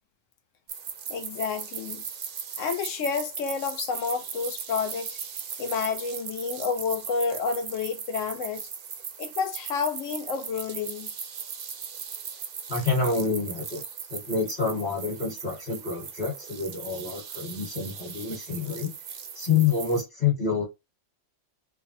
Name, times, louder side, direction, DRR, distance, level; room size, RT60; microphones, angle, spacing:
sound 1, 0.7-20.0, right 7 dB, 55° right, 0.6 m, -38 dB
voice 1, 1.1-2.0 2.6-5.2 5.6-8.6 9.2-11.1, left 5 dB, 70° left, 1.1 m, -30 dB
voice 2, 12.7-13.8 14.1-18.9 19.3-20.6, left 5 dB, 40° left, 1.3 m, -27 dB
3.2 x 2.1 x 2.6 m
omnidirectional pair, 1.4 m